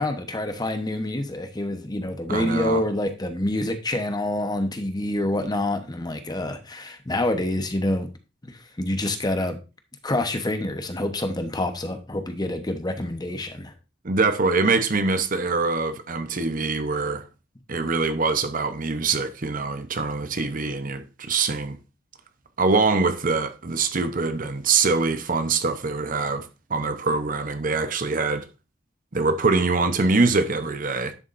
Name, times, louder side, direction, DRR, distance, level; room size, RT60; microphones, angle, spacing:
voice 1, 0.0-8.1 8.4-9.6 10.0-13.7, left 1 dB, 20° left, 1.0 m, -27 dB
voice 2, 2.3-2.8 14.0-17.2 17.7-21.8 22.6-28.5 29.1-31.1, right 4 dB, 45° right, 0.8 m, -24 dB
11.0 x 7.1 x 2.6 m
head